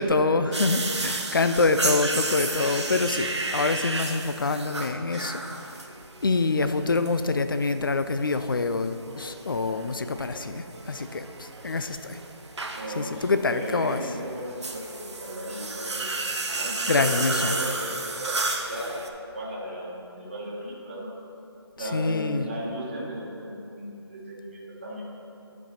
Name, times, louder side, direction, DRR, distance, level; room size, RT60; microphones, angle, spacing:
voice 1, 0.0-5.4 6.2-12.2 12.9-14.0 16.9-17.6 21.9-22.5, left 3 dB, 50° left, 10 dB, 0.4 m, -26 dB
sound 1, 0.5-19.1, right 3 dB, 90° right, 0.9 m, -33 dB
voice 2, 12.7-16.1 16.5-21.1 21.8-25.0, equal, 25° right, -5 dB, 1.3 m, -36 dB
10.5 x 5.2 x 4.4 m, 2.8 s
figure-of-eight pair, 175°, 14 cm